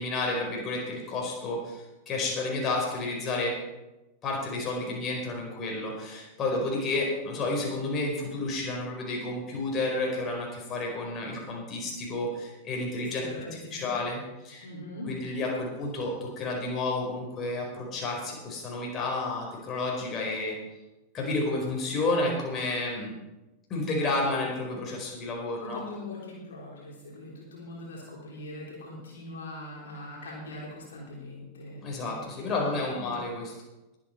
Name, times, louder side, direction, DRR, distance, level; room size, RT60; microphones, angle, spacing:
voice 1, 0.0-3.6 4.2-13.3 13.7-14.7 15.1-20.6 21.1-23.1 23.7-25.8 31.8-33.5, left 2 dB, 30° left, -1 dB, 4.8 m, -31 dB
voice 2, 13.0-14.0 14.6-15.1 25.6-32.4 32.9-33.3, left 1 dB, 65° left, -3 dB, 3.5 m, -42 dB
21.5 x 8.8 x 4.6 m, 1.0 s
figure-of-eight pair, 90°, 0 cm